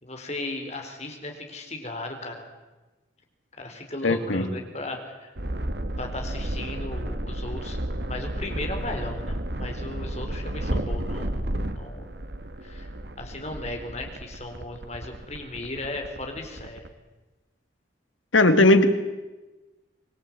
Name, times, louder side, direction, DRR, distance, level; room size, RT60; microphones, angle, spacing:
voice 1, 0.0-2.4 3.6-5.3 6.0-7.8 8.1-11.4 11.7-12.1 12.6-12.9 13.2-16.8, left 2 dB, 35° left, 4 dB, 4.3 m, -36 dB
voice 2, 4.0-4.5 18.3-18.9, left 2 dB, 85° left, 9 dB, 2.3 m, -18 dB
sound 1, 5.4-16.9, right 1 dB, 55° right, 1.6 m, -32 dB
25.5 x 21.0 x 9.0 m, 1.1 s
head